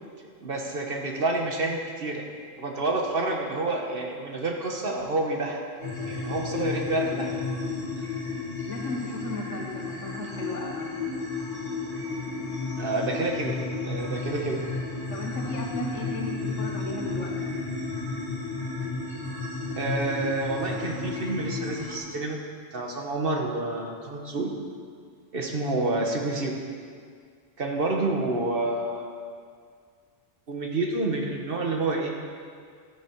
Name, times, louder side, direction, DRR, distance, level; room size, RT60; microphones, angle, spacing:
voice 1, 0.4-2.2 2.6-5.6 6.1-7.4 12.8-14.6 19.8-22.4 22.7-24.5 25.3-26.6 27.6-29.1 30.5-32.1, right 2 dB, 50° right, 1 dB, 1.4 m, -28 dB
sound 1, 5.8-22.0, left 3 dB, 35° left, 2.1 m, -32 dB
voice 2, 8.7-10.9 15.1-17.6, left 2 dB, 90° left, 0 dB, 1.8 m, -35 dB
13.0 x 9.4 x 4.6 m, 2.1 s
omnidirectional pair, 1.2 m